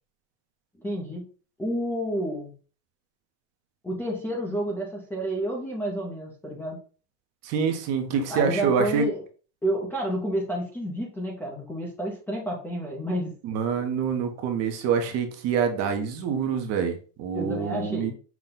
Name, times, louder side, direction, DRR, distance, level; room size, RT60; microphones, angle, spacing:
voice 1, 0.8-1.3 1.6-2.5 3.8-6.8 8.3-9.2 9.6-13.3 17.3-18.1, right 1 dB, 5° left, -5 dB, 0.5 m, -30 dB
voice 2, 7.4-9.1 13.4-18.1, right 6 dB, 40° right, 6 dB, 0.7 m, -26 dB
5.8 x 2.2 x 3.7 m, 0.38 s
cardioid pair, 165°, 39 cm